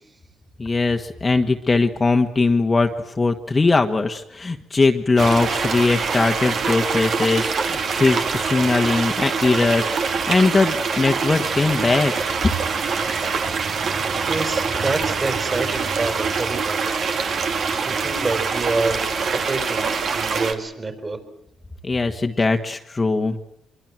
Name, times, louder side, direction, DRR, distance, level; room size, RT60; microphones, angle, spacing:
voice 1, 0.6-12.1 12.4-12.5 21.8-23.4, left 3 dB, 25° left, 5 dB, 1.6 m, -20 dB
sound 1, 5.2-20.5, right 5 dB, 55° right, 2.5 m, -24 dB
voice 2, 14.2-16.8 17.8-21.2, right 3 dB, 30° right, 8 dB, 5.1 m, -27 dB
24.5 x 23.5 x 7.7 m, 0.76 s
cardioid pair, 90°, 0 cm